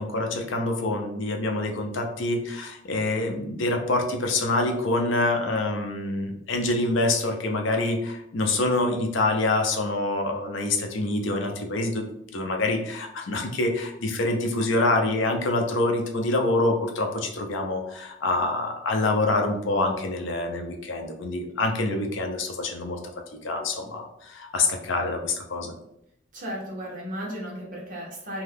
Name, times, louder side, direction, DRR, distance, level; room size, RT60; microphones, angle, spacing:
voice 1, 0.0-12.0 12.3-23.0 23.4-25.7, left 2 dB, 70° left, 3 dB, 0.5 m, -26 dB
voice 2, 26.3-28.4, equal, 40° right, -4 dB, 1.0 m, -35 dB
2.6 x 2.3 x 3.4 m, 0.77 s
head